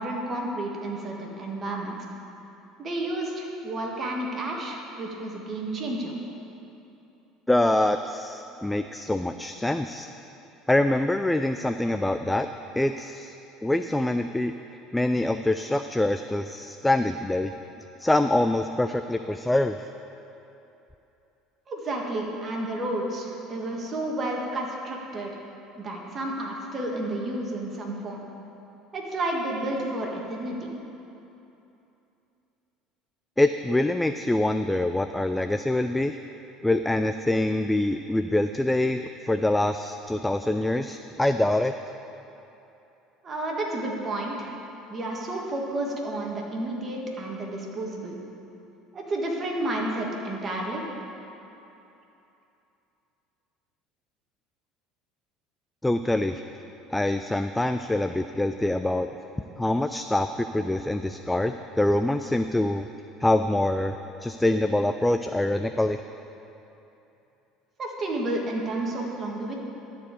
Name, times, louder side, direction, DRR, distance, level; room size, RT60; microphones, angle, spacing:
voice 1, 0.0-1.9 2.8-6.1 21.7-25.3 25.7-28.2 28.9-30.7 43.2-44.5 44.9-48.1 48.9-50.8 67.8-69.6, right 1 dB, 30° right, -1 dB, 1.7 m, -31 dB
voice 2, 7.5-10.1 10.7-12.5 12.8-13.3 13.6-14.5 14.9-17.5 18.0-19.8 33.4-36.2 36.6-41.7 55.8-56.4 56.9-59.1 59.6-62.9 63.2-63.9 64.2-66.0, left 1 dB, 5° left, 8 dB, 0.3 m, -25 dB
13.0 x 4.7 x 8.4 m, 2.9 s
supercardioid pair, 120°, 0 cm